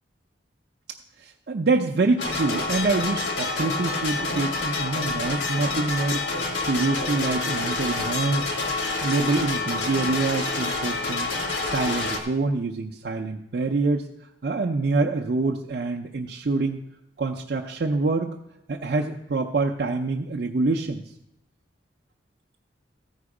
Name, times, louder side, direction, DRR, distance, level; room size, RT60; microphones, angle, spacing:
voice 1, 1.2-8.5 9.0-11.3 11.6-14.1 14.4-16.8 17.2-18.3 18.7-21.0, right 3 dB, 60° right, 0 dB, 0.5 m, -26 dB
sound 1, 2.2-12.2, left 3 dB, 85° left, 1.4 m, -28 dB
14.0 x 5.1 x 4.8 m, 0.81 s
head